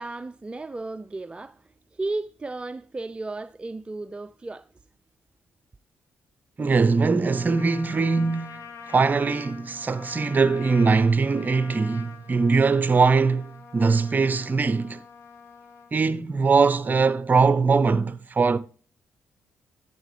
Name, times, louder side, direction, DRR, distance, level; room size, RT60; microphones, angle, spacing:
voice 1, 0.0-4.7, right 2 dB, 20° right, 0.4 m, -34 dB
voice 2, 6.6-15.0 15.9-18.6, right 4 dB, 35° right, 0.8 m, -21 dB
Trumpet, 7.2-15.9, left 6 dB, 70° left, 1.8 m, -45 dB
12.0 x 7.4 x 3.2 m
supercardioid pair, 65°, 5 cm